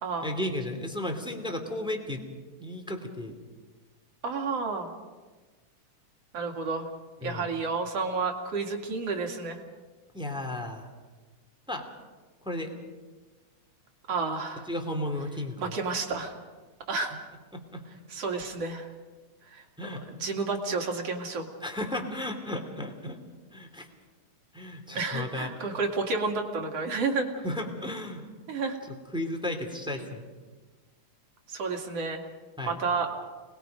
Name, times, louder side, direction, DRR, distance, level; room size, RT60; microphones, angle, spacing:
voice 1, 0.2-2.2 2.6-3.4 7.2-7.5 10.1-10.9 11.7-11.9 12.4-12.7 14.7-15.8 17.5-17.8 19.8-20.0 21.6-23.2 23.5-23.9 24.5-25.7 27.4-28.2 29.1-30.3 32.6-32.8, left 1 dB, ahead, 4 dB, 2.1 m, -34 dB
voice 2, 4.2-4.9 6.3-6.9 7.2-9.6 14.1-14.7 15.6-16.4 16.9-17.1 18.1-18.9 19.5-19.6 20.0-21.5 24.9-27.3 28.5-28.8 30.0-30.1 31.5-32.2 32.7-33.1, right 4 dB, 50° right, 3 dB, 3.1 m, -31 dB
29.5 x 20.5 x 5.2 m, 1.3 s
omnidirectional pair, 3.6 m